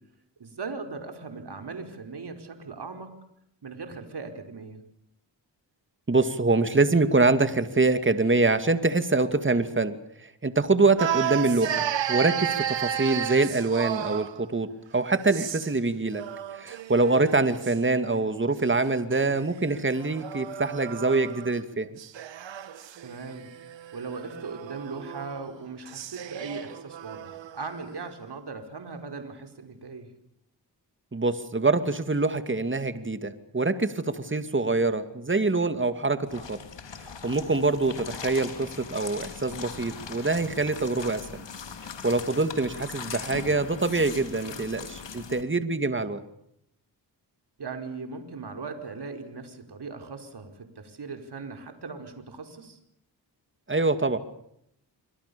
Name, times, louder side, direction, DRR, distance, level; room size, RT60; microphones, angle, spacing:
voice 1, 0.4-3.1 3.6-4.8 15.7-15.8 23.0-23.5 23.9-30.1 34.2-34.3 44.5-44.6 47.6-52.8, right 4 dB, 65° right, 6 dB, 4.8 m, -39 dB
voice 2, 6.1-14.7 14.9-16.2 16.5-21.9 31.1-36.6 37.0-41.4 42.0-46.2 53.7-54.2, right 3 dB, 25° right, 10 dB, 2.6 m, -25 dB
sound 1, 11.0-14.4 15.2-15.8 16.1-17.8 18.8-21.6 22.0-27.6, right 10 dB, 85° right, 1.4 m, -33 dB
sound 2, 36.3-45.4, left 6 dB, 75° left, 3.7 m, -40 dB
26.5 x 25.5 x 7.1 m, 0.75 s
cardioid pair, 50°, 44 cm